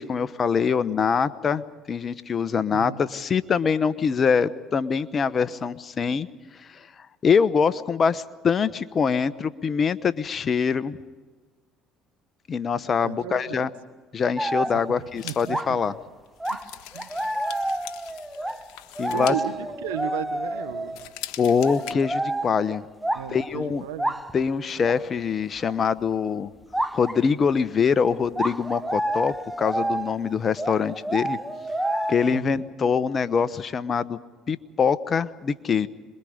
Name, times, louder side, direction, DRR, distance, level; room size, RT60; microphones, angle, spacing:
voice 1, 0.0-6.3 6.7-6.8 7.2-11.0 12.5-13.7 14.1-15.9 19.0-19.3 21.4-22.8 23.3-23.8 24.3-26.5 26.9-31.4 32.1-34.2 34.5-35.9, left 6 dB, 40° left, 14 dB, 1.0 m, -24 dB
voice 2, 13.0-13.7 14.7-15.8 16.5-16.6 16.9-17.1 19.1-21.0 23.1-24.1 32.3-32.6, right 11 dB, 90° right, 9 dB, 1.4 m, -35 dB
sound 1, 14.4-15.0 15.5-15.8 16.4-21.0 21.6-23.6 24.0-24.4 24.8-25.0 25.6-25.7 26.7-27.2 28.4-32.4, right 1 dB, 5° right, 1.0 m, -29 dB
sound 2, 15.2-20.5 20.8-21.9, left 12 dB, 75° left, 1.5 m, -42 dB
27.0 x 22.0 x 5.1 m, 1.4 s
supercardioid pair, 75°, 0 cm